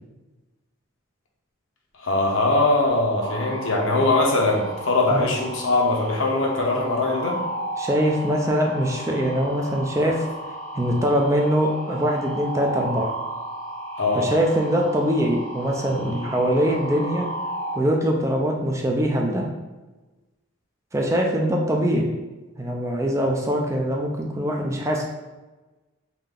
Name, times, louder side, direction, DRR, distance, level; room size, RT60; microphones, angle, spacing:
voice 1, 2.0-7.4 14.0-14.3, left 2 dB, 65° left, 0 dB, 0.8 m, -21 dB
sound 1, 3.2-17.8, right 1 dB, 75° right, 0.7 m, -34 dB
voice 2, 7.8-10.3 10.7-13.1 14.1-17.3 17.8-19.5 20.9-22.1 22.6-25.0, equal, 15° right, 0 dB, 0.4 m, -23 dB
3.6 x 2.8 x 3.6 m, 1.2 s
head